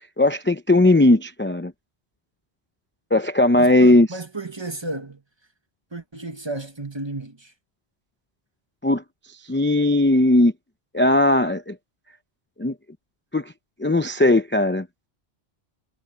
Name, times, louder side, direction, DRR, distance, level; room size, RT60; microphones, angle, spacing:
voice 1, 0.2-1.7 3.1-4.1 8.8-9.0 9.5-10.5 10.9-11.8 12.6-12.7 13.3-13.5 13.8-14.9, left 2 dB, 15° left, 0.6 m, -18 dB
voice 2, 3.6-5.2 5.9-7.5, right 2 dB, 25° right, 1.3 m, -33 dB
omnidirectional pair, 1.1 m